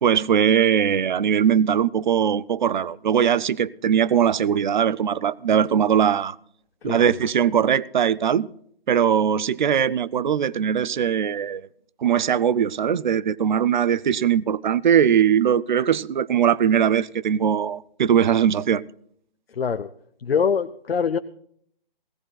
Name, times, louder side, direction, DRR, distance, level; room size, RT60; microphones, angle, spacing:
voice 1, 0.0-6.4 6.8-8.5 8.9-11.6 12.0-18.8, right 8 dB, 55° right, 0.6 m, -20 dB
voice 2, 6.9-7.2 19.6-19.9 20.2-21.2, left 6 dB, 80° left, 0.8 m, -24 dB
20.5 x 17.5 x 2.3 m
hypercardioid pair, 155°, 29 cm